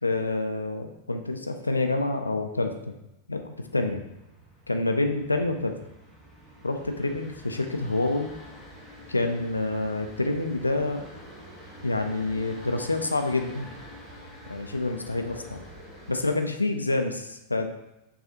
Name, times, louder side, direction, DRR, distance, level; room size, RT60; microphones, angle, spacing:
voice 1, 0.0-2.9 3.3-4.0 4.7-5.8 6.6-8.3 9.1-11.0 11.8-13.7 14.5-15.6 16.1-17.7, left 2 dB, 80° left, 6 dB, 0.3 m, -27 dB
sound 1, 3.6-16.3, equal, 15° right, 0.9 m, -47 dB
6.1 x 2.4 x 2.7 m, 0.91 s
figure-of-eight pair, 90°, 0 cm